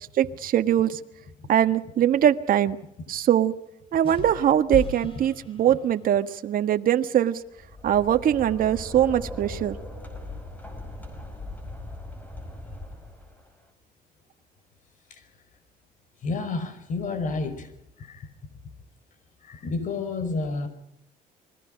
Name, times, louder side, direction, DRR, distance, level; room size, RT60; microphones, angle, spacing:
voice 1, 0.2-1.0 1.5-2.8 3.1-3.5 3.9-7.4 7.8-9.7, right 10 dB, 55° right, 8 dB, 1.5 m, -22 dB
sound 1, 4.0-6.2, left 5 dB, 30° left, 4.6 m, -37 dB
sound 2, 7.5-13.5, left 2 dB, 10° left, 5.5 m, -39 dB
voice 2, 16.2-17.7 18.0-18.3 19.4-20.7, left 3 dB, 50° left, 12 dB, 5.4 m, -30 dB
29.5 x 21.5 x 5.2 m, 0.80 s
cardioid pair, 110°, 17 cm